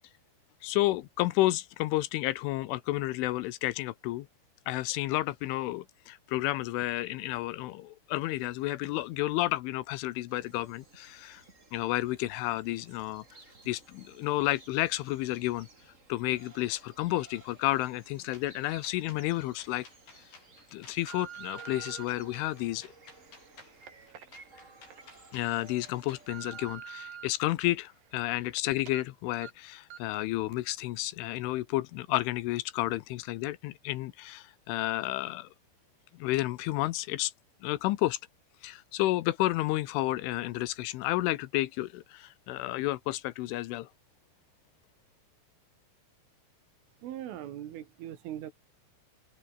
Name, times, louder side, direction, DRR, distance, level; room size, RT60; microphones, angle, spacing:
voice 1, 0.6-4.3 4.7-11.4 11.7-13.2 13.7-15.7 16.1-19.9 20.7-22.9 25.3-35.5 36.1-37.3 37.6-38.2 38.6-43.9, left 17 dB, 80° left, 3.3 m, -31 dB
sound 1, 10.3-26.8, right 3 dB, 20° right, 2.3 m, -56 dB
sound 2, 18.3-26.3, left 4 dB, 50° left, 8.9 m, -55 dB
sound 3, 18.8-18.9 19.5-19.8 20.4-22.0 22.7-25.0 25.4-25.5 26.0-27.3 27.7-28.6 28.9-29.0 29.4-29.5 29.9-30.2 30.5-30.6, right 9 dB, 50° right, 3.6 m, -47 dB
voice 2, 47.0-48.5, right 11 dB, 80° right, 4.7 m, -40 dB
open air
omnidirectional pair, 5.8 m